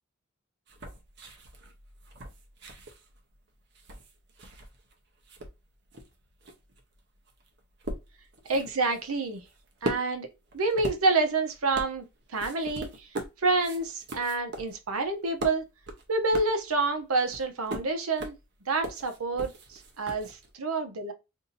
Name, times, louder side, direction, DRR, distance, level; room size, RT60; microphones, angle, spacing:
sound 1, 0.7-4.9 5.2-20.6, right 1 dB, 50° right, 0.8 m, -40 dB
voice 1, 8.5-9.4 9.8-10.3 10.5-12.0 12.3-13.1 13.4-15.6 16.1-18.3 18.7-21.1, right 3 dB, 85° right, 0.8 m, -28 dB
2.7 x 2.7 x 3.9 m
head